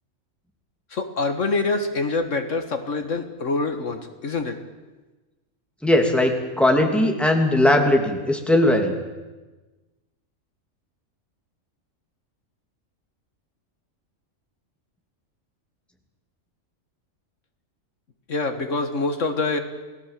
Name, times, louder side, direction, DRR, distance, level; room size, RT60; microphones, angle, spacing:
voice 1, 0.9-4.6 18.3-19.6, left 3 dB, 65° left, 7 dB, 1.9 m, -25 dB
voice 2, 5.8-8.9, left 1 dB, ahead, 3 dB, 2.7 m, -19 dB
28.5 x 18.0 x 7.5 m, 1.2 s
omnidirectional pair, 1.4 m